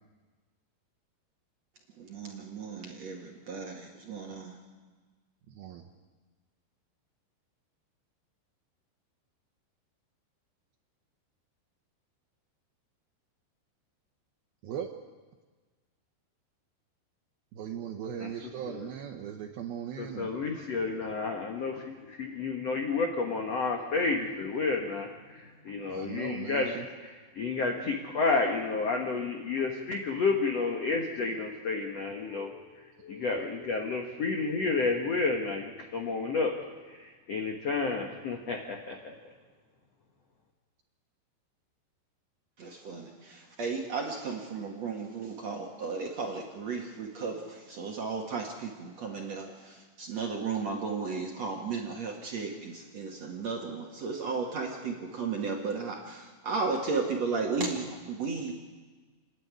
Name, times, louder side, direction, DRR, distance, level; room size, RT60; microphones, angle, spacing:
voice 1, 2.0-4.5 42.6-58.5, right 4 dB, 60° right, 1 dB, 1.8 m, -34 dB
voice 2, 5.5-5.9 14.6-14.9 17.5-20.3 20.9-21.1 25.9-26.9 33.3-33.5, right 9 dB, 75° right, 5 dB, 2.3 m, -39 dB
voice 3, 20.0-26.7 27.3-36.5 36.9-39.1, left 4 dB, 80° left, 3 dB, 1.4 m, -31 dB
29.0 x 10.5 x 9.5 m, 1.4 s
omnidirectional pair, 5.4 m